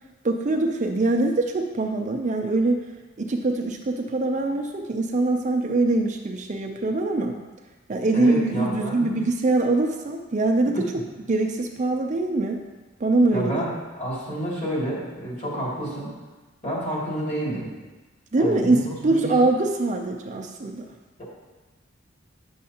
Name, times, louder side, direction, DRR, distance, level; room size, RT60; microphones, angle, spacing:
voice 1, 0.2-2.8 3.2-7.4 7.9-10.8 11.3-12.6 13.0-13.6 18.3-20.8, right 2 dB, 35° right, 3 dB, 0.5 m, -23 dB
voice 2, 8.1-9.1 13.3-16.1 16.6-17.7 18.4-19.3 21.2-21.3, right 1 dB, 35° left, -6 dB, 2.5 m, -29 dB
9.4 x 6.4 x 2.9 m, 1.2 s
head